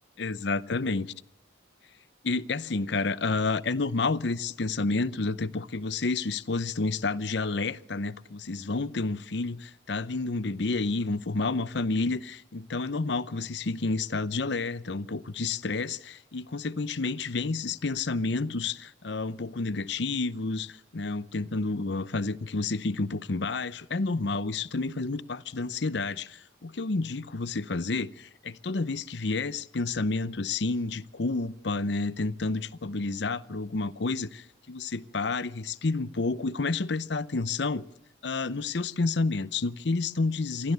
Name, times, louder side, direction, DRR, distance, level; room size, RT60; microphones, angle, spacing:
voice 1, 0.2-1.1 2.2-37.8 38.2-40.7, left 3 dB, 65° left, 0.7 m, -30 dB
28.0 x 13.0 x 8.1 m
head